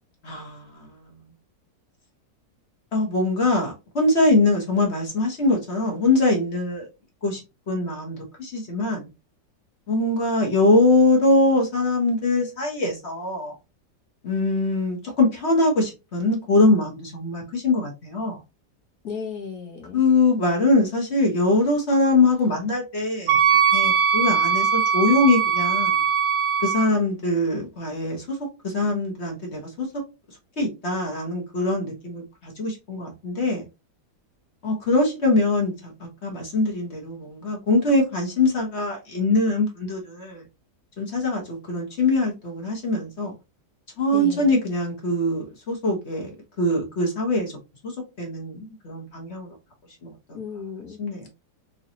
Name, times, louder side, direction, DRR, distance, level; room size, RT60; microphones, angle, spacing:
voice 1, 0.2-1.1 2.9-6.9 7.2-7.4 7.7-9.1 9.9-13.5 14.2-18.4 19.9-23.4 23.7-26.0 26.6-28.4 28.6-29.9 30.6-33.6 34.6-35.9 36.2-40.4 41.0-43.3 44.0-46.3 46.6-47.5 47.8-47.9 48.2-49.5 50.0-50.4 51.0-51.3, left 2 dB, 45° left, 1.4 m, -22 dB
voice 2, 19.0-20.0 44.1-44.6 50.3-51.0, left 6 dB, 60° left, 1.5 m, -34 dB
Wind instrument woodwind instrument, 23.3-26.9, right 7 dB, 85° right, 1.3 m, -20 dB
3.9 x 2.9 x 2.7 m
omnidirectional pair, 1.8 m